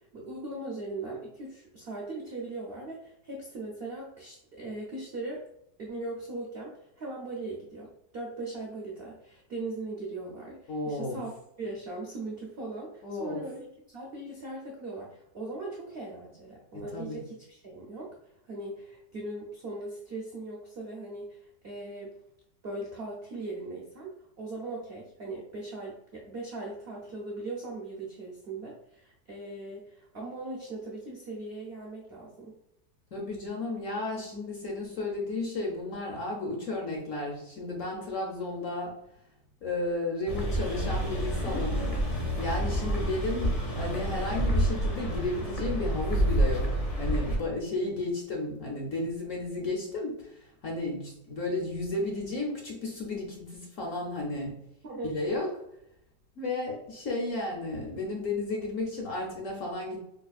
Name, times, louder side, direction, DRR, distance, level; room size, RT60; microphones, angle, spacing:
voice 1, 0.1-5.4 5.8-11.3 11.6-13.7 13.9-18.1 18.5-22.1 22.6-32.6 41.5-41.7 54.8-55.1, right 2 dB, 70° right, -3 dB, 0.5 m, -39 dB
voice 2, 10.7-11.2 13.0-13.5 16.7-17.2 33.1-39.0 39.6-41.8 42.4-54.6 55.0-55.6 56.4-60.0, left 2 dB, 60° left, -1 dB, 0.9 m, -33 dB
sound 1, 40.3-47.4, right 1 dB, 40° left, 0.5 m, -28 dB
4.9 x 2.3 x 2.4 m, 0.80 s
omnidirectional pair, 1.9 m